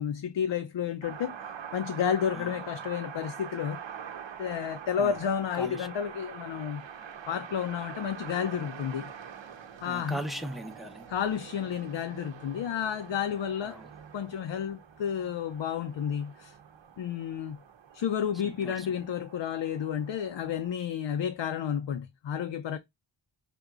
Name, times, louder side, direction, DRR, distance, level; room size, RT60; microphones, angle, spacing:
voice 1, 0.0-1.4 1.7-3.8 4.4-6.8 7.3-9.1 9.8-10.2 11.1-13.8 14.1-16.5 17.0-17.6 17.9-22.8, left 8 dB, 65° left, 0.6 m, -31 dB
sound 1, 1.0-20.7, right 8 dB, 65° right, 0.8 m, -45 dB
voice 2, 5.5-5.9 9.8-11.1 13.6-13.9 18.4-18.9, right 1 dB, ahead, 0.6 m, -39 dB
5.2 x 2.8 x 2.4 m
wide cardioid pair, 70°, 48 cm